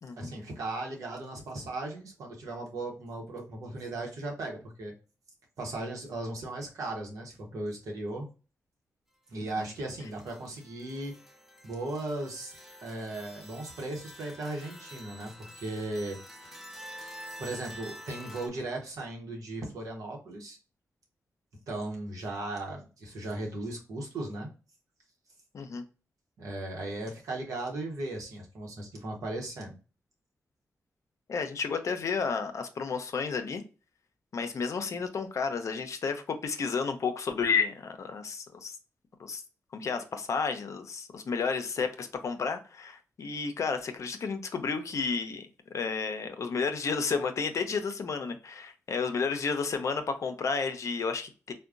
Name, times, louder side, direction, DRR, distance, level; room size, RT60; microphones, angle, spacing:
voice 1, 0.2-4.9 5.6-8.3 9.3-11.1 11.6-16.2 16.4-16.5 17.4-20.6 21.7-24.5 26.4-29.7, right 2 dB, 85° right, 0 dB, 0.9 m, -37 dB
sound 1, 9.6-18.5, equal, 5° right, 0.6 m, -48 dB
voice 2, 31.3-33.6 34.3-38.7 39.2-39.4 39.7-45.5 45.7-51.5, left 5 dB, 65° left, 7 dB, 0.5 m, -31 dB
3.5 x 2.2 x 2.5 m, 0.33 s
cardioid pair, 55°, 6 cm